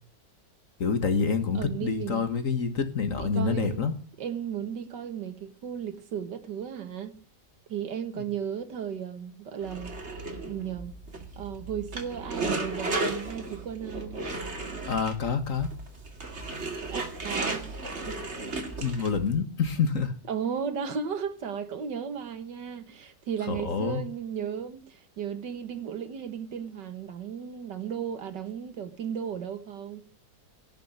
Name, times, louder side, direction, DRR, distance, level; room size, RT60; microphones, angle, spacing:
voice 1, 0.8-3.9 14.9-15.7 18.8-20.1 23.5-24.0, left 5 dB, 50° left, 1.8 m, -27 dB
voice 2, 1.5-2.3 3.2-3.9 4.2-7.2 7.7-10.0 10.4-11.0 11.4-14.2 16.9-17.7 18.1-18.2 20.3-30.1, right 8 dB, 70° right, 2.0 m, -35 dB
sound 1, 9.6-19.3, right 2 dB, 40° right, 2.5 m, -35 dB
17.5 x 6.8 x 9.8 m
omnidirectional pair, 1.9 m